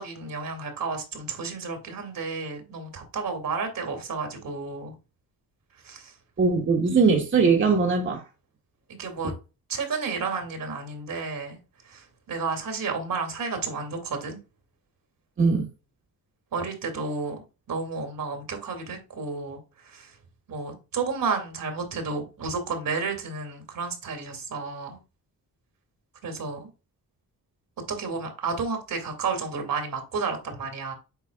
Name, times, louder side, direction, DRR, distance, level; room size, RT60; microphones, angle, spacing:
voice 1, 0.0-4.9 5.8-6.2 8.9-9.3 9.7-11.6 11.8-14.4 16.5-17.4 17.7-20.2 20.5-25.0 26.2-26.7 27.9-30.9, right 4 dB, 65° right, 2.4 m, -31 dB
voice 2, 6.4-8.2 15.4-15.7, right 4 dB, 35° right, 1.4 m, -21 dB
8.3 x 5.1 x 2.4 m
wide cardioid pair, 145°, 36 cm